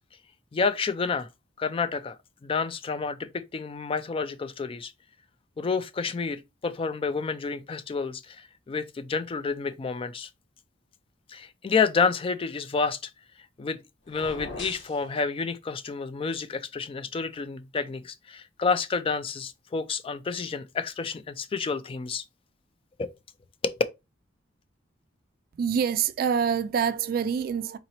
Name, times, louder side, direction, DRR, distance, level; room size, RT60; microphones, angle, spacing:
voice 1, 0.5-1.3 1.6-2.2 2.4-4.9 5.6-10.3 11.3-13.0 13.6-13.8 14.1-22.2 23.0-23.1 23.6-23.8, left 5 dB, 30° left, 0.3 m, -29 dB
sound 1, 14.0-15.0, left 2 dB, 70° left, 1.3 m, -39 dB
voice 2, 25.5-27.8, right 7 dB, 50° right, 0.3 m, -26 dB
3.9 x 2.9 x 2.9 m
head